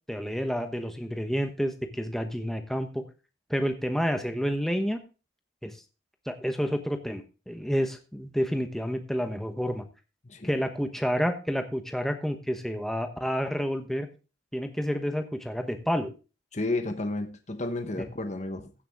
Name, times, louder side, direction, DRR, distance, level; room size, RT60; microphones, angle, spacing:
voice 1, 0.1-3.0 3.5-5.0 5.6-5.7 6.3-9.9 10.4-14.1 14.5-16.1 18.0-18.1, equal, ahead, 6 dB, 1.1 m, -29 dB
voice 2, 16.5-18.7, left 2 dB, 35° left, 7 dB, 1.0 m, -32 dB
15.5 x 6.7 x 3.6 m, 0.32 s
head